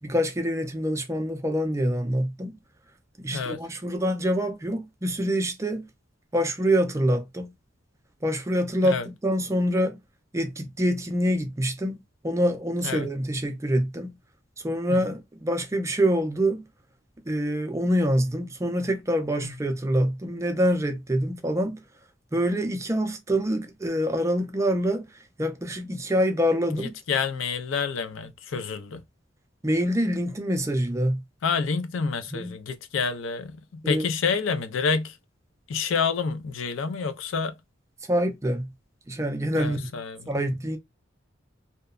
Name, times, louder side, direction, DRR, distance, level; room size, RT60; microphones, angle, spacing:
voice 1, 0.0-2.6 3.2-5.9 6.3-7.5 8.2-10.0 10.3-12.0 12.2-14.2 14.6-16.6 17.3-21.8 22.3-26.9 29.6-31.2 32.3-32.6 33.8-34.1 38.1-38.7 39.1-39.9 40.3-40.8, equal, 15° right, 0.4 m, -26 dB
voice 2, 27.1-29.0 31.4-35.2 35.7-37.5 39.5-40.2, left 5 dB, 85° left, 0.4 m, -28 dB
2.8 x 2.1 x 2.2 m
head